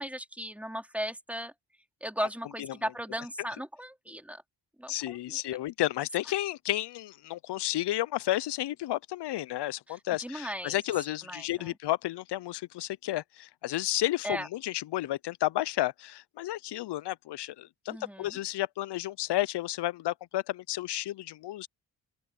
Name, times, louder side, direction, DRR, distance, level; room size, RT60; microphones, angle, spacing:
voice 1, 0.0-1.5 2.0-4.4 4.8-5.6 9.9-10.8 11.3-11.7 14.2-14.5 17.9-18.4, equal, 5° right, 3.9 m, -37 dB
voice 2, 4.9-21.7, left 15 dB, 70° left, 0.7 m, -32 dB
open air
supercardioid pair, 55°, 43 cm